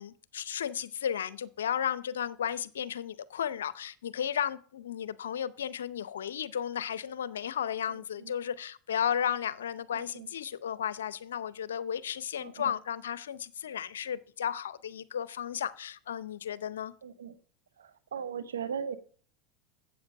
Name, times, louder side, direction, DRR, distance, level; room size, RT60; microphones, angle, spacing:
voice 1, 0.0-16.9, left 9 dB, 85° left, 0.6 m, -34 dB
voice 2, 7.9-8.3 9.9-10.3 12.4-12.7 17.0-17.3 17.8-19.0, right 7 dB, 90° right, 0.9 m, -39 dB
7.9 x 7.9 x 5.2 m
hypercardioid pair, 95°, 0 cm